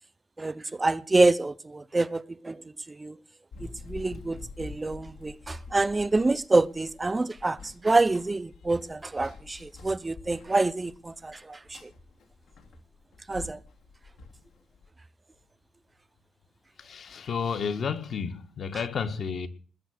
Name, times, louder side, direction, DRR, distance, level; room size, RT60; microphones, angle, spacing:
voice 1, 0.4-3.2 3.6-11.9 13.3-13.6, right 2 dB, 25° right, 0.6 m, -27 dB
Run, 3.5-14.9, left 4 dB, 85° left, 2.9 m, -47 dB
voice 2, 16.8-19.5, left 6 dB, 60° left, 1.7 m, -31 dB
20.0 x 7.7 x 6.6 m
cardioid pair, 85°, 0 cm